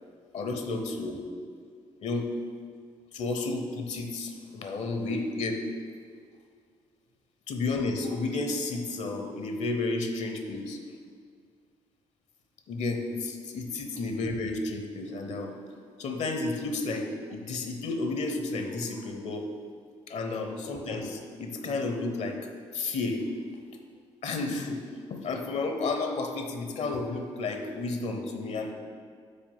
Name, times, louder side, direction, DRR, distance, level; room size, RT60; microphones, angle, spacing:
voice 1, 0.3-1.3 2.0-2.3 3.1-5.6 7.5-10.8 12.7-15.5 16.0-19.5 20.1-22.4 22.7-23.2 24.2-24.8 25.1-28.7, left 3 dB, 55° left, 5 dB, 0.8 m, -32 dB
5.4 x 4.2 x 5.5 m, 2.1 s
hypercardioid pair, 45°, 14 cm